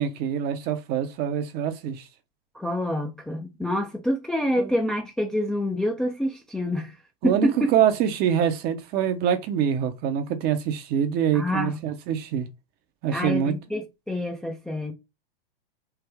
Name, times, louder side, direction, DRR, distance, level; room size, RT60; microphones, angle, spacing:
voice 1, 0.0-2.0 4.6-4.7 7.2-12.5 13.0-13.5, right 9 dB, 35° right, 0.6 m, -25 dB
voice 2, 2.5-6.9 7.2-7.7 11.3-11.8 13.1-14.9, equal, ahead, 0.4 m, -27 dB
3.3 x 2.1 x 3.4 m
hypercardioid pair, 115°, 29 cm